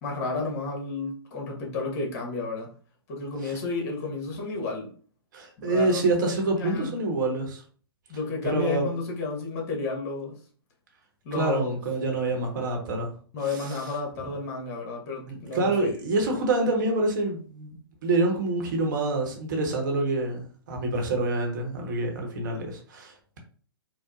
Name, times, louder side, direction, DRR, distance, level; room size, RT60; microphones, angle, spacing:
voice 1, 0.0-2.7 3.1-4.9 5.6-6.0 6.6-6.9 8.1-10.4 11.2-11.8 13.3-15.7, left 3 dB, 40° left, 1.0 m, -31 dB
voice 2, 5.3-7.6 8.4-8.9 11.3-13.1 13.4-13.8 15.3-17.8 18.0-23.4, right 2 dB, 50° right, 0.9 m, -27 dB
4.4 x 2.0 x 2.4 m
figure-of-eight pair, 115°, 13 cm